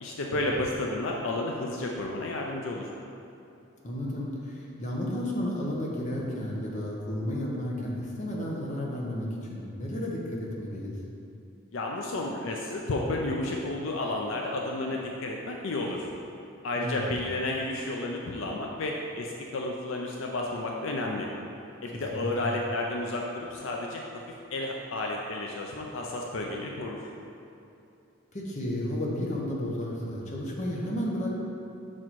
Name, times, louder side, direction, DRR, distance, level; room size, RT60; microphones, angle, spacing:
voice 1, 0.0-2.9 11.7-16.1 16.6-21.3 21.8-24.0 24.5-27.0, left 2 dB, 75° left, 0 dB, 0.5 m, -31 dB
voice 2, 3.8-10.9 16.8-17.0 21.9-22.5 28.3-31.3, left 1 dB, 40° left, -3 dB, 0.9 m, -32 dB
6.3 x 4.2 x 4.5 m, 2.7 s
head